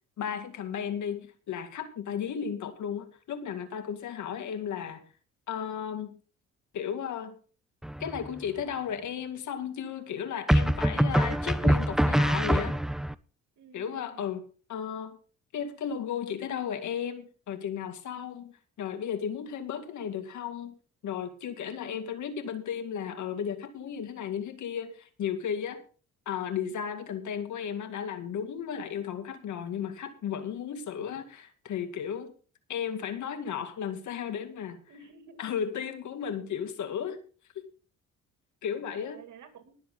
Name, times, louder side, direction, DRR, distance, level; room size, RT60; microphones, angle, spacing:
voice 1, 0.2-5.0 5.5-6.1 6.7-7.4 8.0-12.8 13.7-14.4 14.7-15.2 15.5-20.8 21.0-25.8 26.3-32.3 32.7-34.8 35.4-37.2 38.6-39.2, left 8 dB, 70° left, 8 dB, 2.3 m, -34 dB
sound 1, 7.8-8.4 10.5-13.1, equal, ahead, 0.5 m, -24 dB
voice 2, 13.6-14.3 21.6-22.2 34.9-35.5 38.9-39.8, right 6 dB, 75° right, 7 dB, 2.7 m, -52 dB
20.0 x 7.7 x 3.9 m, 0.38 s
cardioid pair, 90°, 30 cm